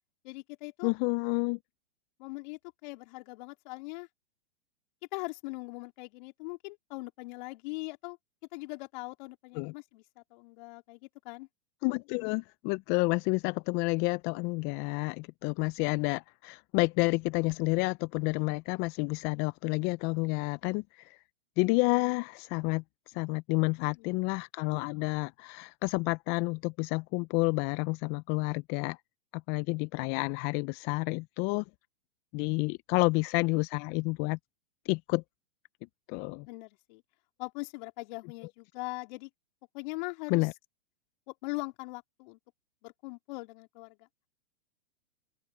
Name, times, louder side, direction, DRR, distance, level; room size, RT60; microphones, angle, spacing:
voice 1, 0.2-0.9 2.2-4.1 5.1-8.2 8.5-11.5 23.8-24.2 36.4-37.0 37.4-39.3 39.7-40.5 41.3-42.4 42.8-44.1, left 25 dB, 50° left, 4.0 m, -41 dB
voice 2, 0.8-1.6 9.5-9.7 11.8-21.2 21.6-29.0 29.3-31.6 32.3-34.4 34.8-35.2 36.1-36.5 40.3-40.5, left 28 dB, 35° left, 0.6 m, -30 dB
open air
hypercardioid pair, 115°, 30 cm